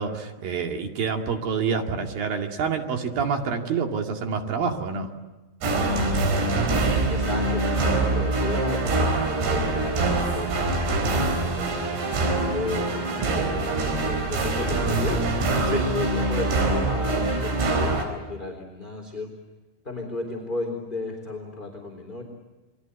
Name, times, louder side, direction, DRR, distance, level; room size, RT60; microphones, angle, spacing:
voice 1, 0.0-5.1 15.7-15.8, right 6 dB, 60° right, 3 dB, 3.8 m, -27 dB
sound 1, 5.6-18.1, right 2 dB, 80° right, 6.7 m, -24 dB
voice 2, 7.1-11.7 12.2-12.9 13.3-15.3 15.6-19.3 19.8-22.2, left 3 dB, 10° left, 3 dB, 3.4 m, -34 dB
29.5 x 24.0 x 8.3 m, 1.1 s
omnidirectional pair, 5.0 m